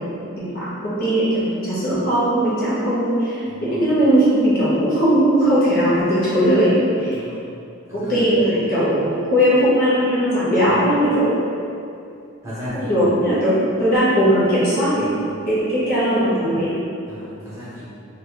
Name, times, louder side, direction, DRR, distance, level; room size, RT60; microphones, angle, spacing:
voice 1, 0.0-7.2 7.9-11.4 12.7-15.1 15.5-16.7, equal, 45° left, -10 dB, 0.9 m, -19 dB
voice 2, 3.4-3.9 7.1-7.4 7.9-8.7 10.7-10.8 12.4-13.0 15.0-15.2 17.1-17.8, left 1 dB, 15° right, -12 dB, 1.1 m, -36 dB
3.8 x 2.5 x 3.0 m, 2.5 s
head